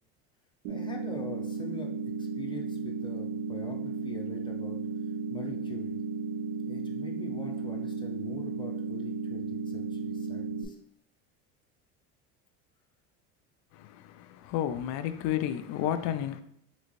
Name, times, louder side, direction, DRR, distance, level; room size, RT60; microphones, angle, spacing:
voice 1, 0.6-4.8 5.3-6.0 6.6-10.8, left 3 dB, 15° left, 0.7 m, -44 dB
sound 1, 0.6-10.6, right 4 dB, 75° right, 0.6 m, -34 dB
voice 2, 13.7-16.4, left 10 dB, 55° left, 0.5 m, -32 dB
3.9 x 3.2 x 3.1 m
supercardioid pair, 125°, 32 cm